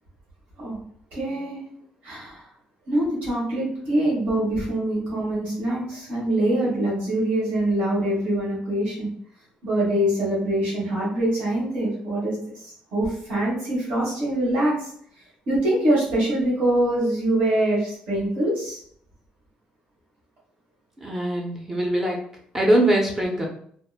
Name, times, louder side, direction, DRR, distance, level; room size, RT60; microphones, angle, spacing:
voice 1, 1.1-1.6 2.0-2.4 2.9-9.1 9.6-14.9 15.5-18.8, right 1 dB, 70° right, -7 dB, 1.3 m, -24 dB
voice 2, 21.0-22.2 22.5-23.5, right 1 dB, 15° right, 0 dB, 0.4 m, -22 dB
2.9 x 2.1 x 2.2 m, 0.62 s
cardioid pair, 165°, 3 cm